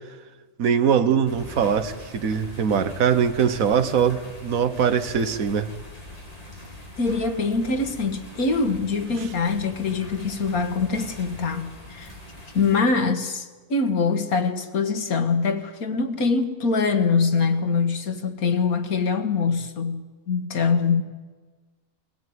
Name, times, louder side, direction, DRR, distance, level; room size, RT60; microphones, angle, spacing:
voice 1, 0.6-5.7, right 7 dB, 70° right, 1.6 m, -22 dB
sound 1, 1.3-12.8, left 1 dB, 25° left, 3.9 m, -42 dB
voice 2, 7.0-12.1 12.5-21.0, left 4 dB, 80° left, 2.1 m, -24 dB
21.5 x 16.0 x 9.5 m
omnidirectional pair, 1.5 m